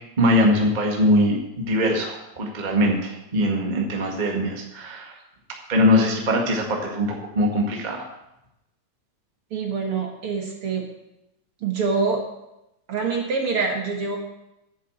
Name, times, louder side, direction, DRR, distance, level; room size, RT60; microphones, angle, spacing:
voice 1, 0.2-5.1 5.7-8.0, left 1 dB, 20° right, 0 dB, 1.2 m, -22 dB
voice 2, 9.5-10.8 11.6-12.2 12.9-14.2, right 4 dB, 50° right, 1 dB, 2.1 m, -25 dB
10.0 x 7.4 x 7.9 m, 0.89 s
omnidirectional pair, 3.5 m